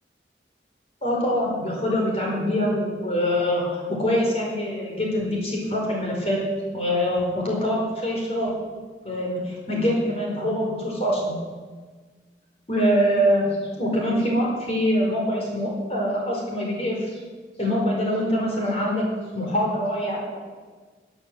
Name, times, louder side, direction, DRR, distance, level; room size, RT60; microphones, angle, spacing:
voice 1, 1.0-6.4 6.7-8.5 9.0-11.4 12.7-17.2 17.6-19.1 19.3-20.4, equal, 35° left, -2 dB, 4.6 m, -24 dB
16.5 x 9.6 x 7.7 m, 1.5 s
head